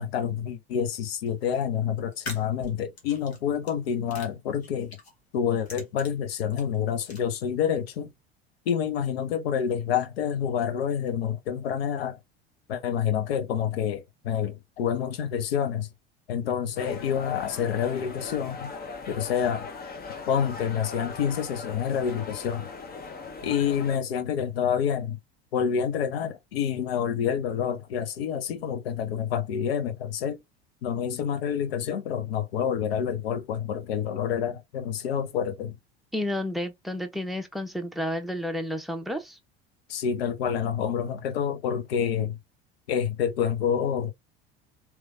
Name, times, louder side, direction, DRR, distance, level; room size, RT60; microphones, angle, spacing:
voice 1, 0.0-5.0 5.3-8.1 8.7-12.2 12.7-15.9 16.3-18.7 19.2-19.6 20.3-22.7 23.4-25.2 25.5-30.4 30.8-35.8 39.9-42.4 42.9-44.1, left 8 dB, 75° left, 1.0 m, -28 dB
sound 1, 1.2-1.6 2.1-3.7 4.1-5.1 5.5-7.2, left 2 dB, 90° left, 1.5 m, -43 dB
sound 2, 16.8-24.0, left 4 dB, 30° left, 1.0 m, -39 dB
voice 2, 36.1-39.4, left 1 dB, ahead, 1.0 m, -31 dB
3.3 x 3.2 x 3.5 m
hypercardioid pair, 75°, 31 cm